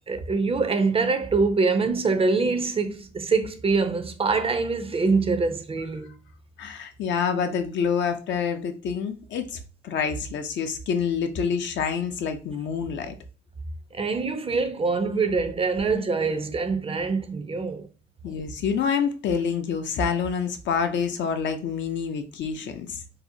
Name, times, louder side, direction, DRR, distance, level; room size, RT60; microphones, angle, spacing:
voice 1, 0.1-6.1 13.9-17.9 18.3-18.4, right 4 dB, 30° right, 0.4 m, -24 dB
voice 2, 6.6-13.2 18.2-23.0, left 6 dB, 65° left, 0.5 m, -27 dB
2.7 x 2.0 x 2.6 m
cardioid pair, 90°, 20 cm